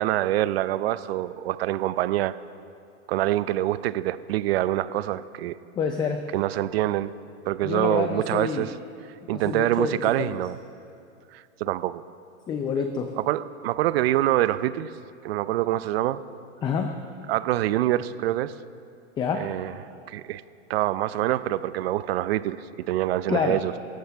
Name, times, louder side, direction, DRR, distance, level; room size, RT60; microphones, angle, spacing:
voice 1, 0.0-2.3 3.1-5.6 6.3-7.1 7.5-8.7 9.3-10.6 11.3-12.0 13.2-14.9 15.2-16.2 17.3-18.5 19.4-19.8 20.1-20.4 20.7-23.7, right 14 dB, 55° right, 16 dB, 0.6 m, -25 dB
voice 2, 5.8-6.2 7.6-8.7 9.2-10.4 12.5-13.1 16.6-16.9 19.2-19.5 23.3-23.6, left 6 dB, 10° left, 6 dB, 0.4 m, -27 dB
28.5 x 14.0 x 3.5 m, 2.6 s
hypercardioid pair, 140°, 37 cm